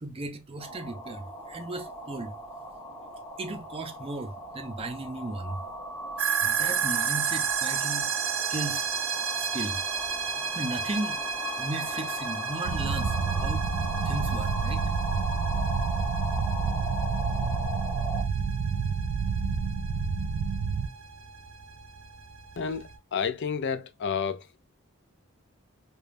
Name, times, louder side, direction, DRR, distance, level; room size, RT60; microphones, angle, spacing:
voice 1, 0.0-2.3 3.4-5.6 6.4-8.1 8.5-8.9 9.4-9.8 10.5-11.2 11.6-13.7 14.0-14.8, right 2 dB, 25° right, 0.5 m, -35 dB
sound 1, 0.6-18.2, left 1 dB, 15° left, 1.5 m, -38 dB
sound 2, 6.2-23.0, right 6 dB, 65° right, 0.8 m, -33 dB
sound 3, 12.6-20.9, right 5 dB, 85° right, 0.4 m, -29 dB
voice 2, 22.6-24.4, left 6 dB, 55° left, 0.4 m, -30 dB
4.9 x 2.3 x 2.5 m
head